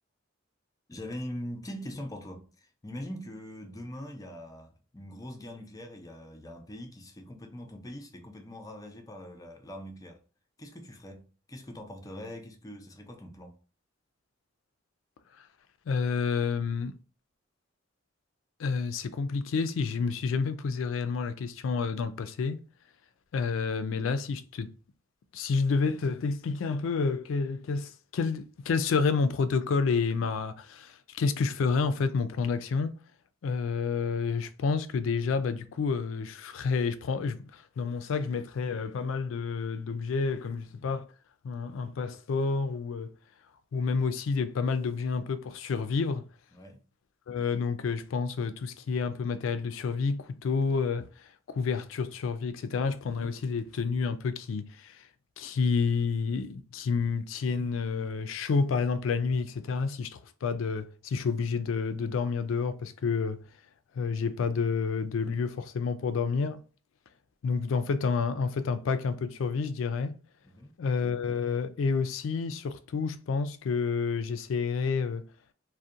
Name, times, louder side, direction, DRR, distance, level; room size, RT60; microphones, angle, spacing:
voice 1, 0.9-10.2 10.6-13.6 46.5-46.8 70.4-70.7, equal, 20° left, 0.4 m, -42 dB
voice 2, 15.9-16.9 18.6-22.6 23.3-24.7 25.3-33.0 33.4-41.0 41.4-43.1 43.7-46.3 47.3-55.1 55.4-63.4 63.9-66.6 67.4-70.2 70.8-75.2, left 5 dB, 85° left, 0.4 m, -29 dB
2.7 x 2.1 x 2.4 m
head